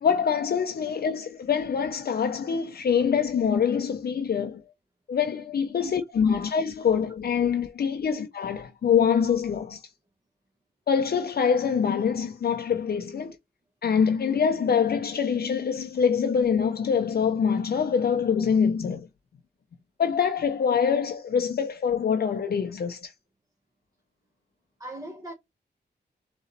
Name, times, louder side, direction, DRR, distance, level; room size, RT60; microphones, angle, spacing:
voice 1, 0.0-4.6 5.1-9.8 10.9-13.4 13.8-19.1 20.0-23.1, left 7 dB, 60° left, 0.6 m, -25 dB
voice 2, 24.8-25.3, right 1 dB, 20° right, 1.1 m, -39 dB
3.9 x 3.1 x 4.0 m
cardioid pair, 75°, 18 cm